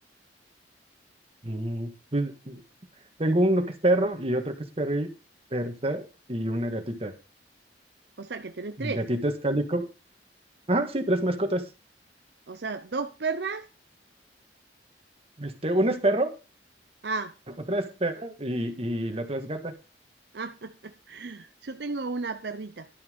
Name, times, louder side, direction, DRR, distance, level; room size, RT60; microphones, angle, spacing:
voice 1, 1.4-2.6 3.2-5.1 5.5-7.1 8.8-9.9 10.7-11.7 15.4-16.3 17.7-19.7, right 1 dB, 35° right, 1.9 m, -27 dB
voice 2, 8.2-9.0 12.5-13.7 17.0-17.3 20.3-22.9, right 4 dB, 65° right, 0.7 m, -33 dB
12.0 x 6.9 x 5.3 m
head